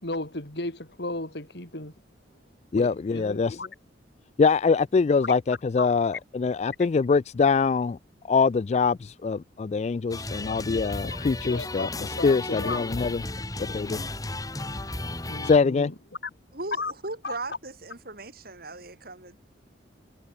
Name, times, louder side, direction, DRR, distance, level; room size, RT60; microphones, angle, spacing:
voice 1, 0.0-1.9 2.8-3.7 5.2-5.3 5.8-5.9 11.4-11.9 12.2-12.8 15.0-15.9 16.8-16.9 17.2-17.3, left 2 dB, 60° left, 4.0 m, -34 dB
voice 2, 2.7-3.6 4.4-8.0 8.2-11.9 12.2-13.2 13.6-14.0 15.4-15.9, left 4 dB, 35° left, 0.3 m, -23 dB
sound 1, 10.1-15.6, left 2 dB, 20° left, 2.2 m, -34 dB
voice 3, 16.5-19.4, right 2 dB, 55° right, 7.0 m, -38 dB
head